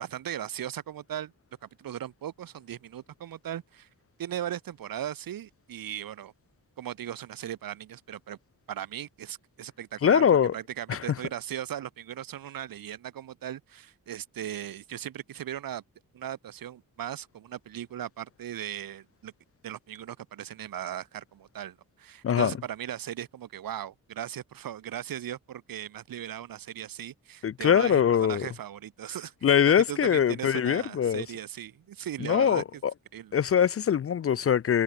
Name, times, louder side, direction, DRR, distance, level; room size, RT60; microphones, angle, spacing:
voice 1, 0.0-1.3 1.6-3.9 4.2-6.3 6.8-8.4 8.7-15.8 16.1-19.3 19.6-29.6 29.9-32.6 33.1-33.4, right 11 dB, 75° right, 0.9 m, -38 dB
voice 2, 10.0-10.5 10.9-11.1 22.2-22.5 27.4-28.5 29.4-31.2 32.2-32.6 33.3-34.8, left 8 dB, 40° left, 0.4 m, -22 dB
wide cardioid pair, 105°, 35 cm